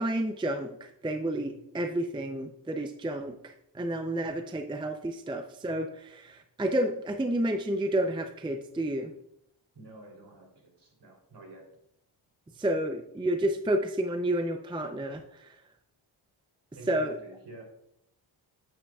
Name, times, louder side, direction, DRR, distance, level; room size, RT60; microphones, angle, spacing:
voice 1, 0.0-9.1 12.6-15.6 16.9-17.2, right 1 dB, 10° right, 6 dB, 0.5 m, -30 dB
voice 2, 9.7-11.7 16.8-17.6, right 2 dB, 55° right, 0 dB, 3.4 m, -48 dB
8.7 x 8.7 x 2.4 m, 0.79 s
cardioid pair, 80°, 49 cm